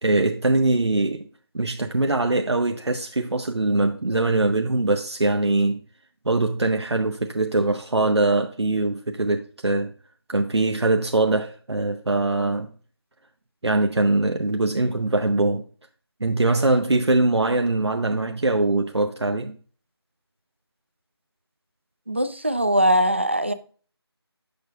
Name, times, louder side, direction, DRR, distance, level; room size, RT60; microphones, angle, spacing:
voice 1, 0.0-1.2 1.5-5.8 6.3-9.9 10.3-12.7 13.6-15.6 16.2-19.6, right 2 dB, 80° right, 0.6 m, -22 dB
voice 2, 22.1-23.5, equal, 25° right, 0.3 m, -21 dB
7.8 x 6.5 x 2.3 m
figure-of-eight pair, 165°, 14 cm